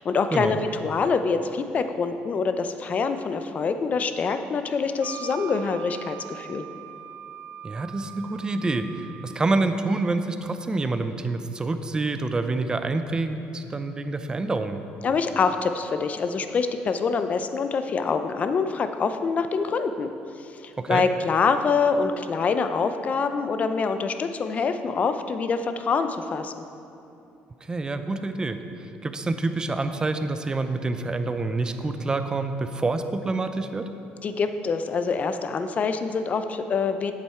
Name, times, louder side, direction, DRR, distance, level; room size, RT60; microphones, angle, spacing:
voice 1, 0.0-6.6 15.0-20.1 20.4-26.5 34.2-37.1, left 5 dB, 40° left, 9 dB, 0.5 m, -25 dB
Wind instrument woodwind instrument, 5.0-9.5, right 11 dB, 70° right, 0.4 m, -42 dB
voice 2, 7.6-14.8 20.8-21.0 27.7-28.6 29.0-33.9, right 3 dB, 20° right, 9 dB, 0.5 m, -27 dB
8.3 x 7.4 x 4.4 m, 2.7 s
cardioid pair, 95°, 4 cm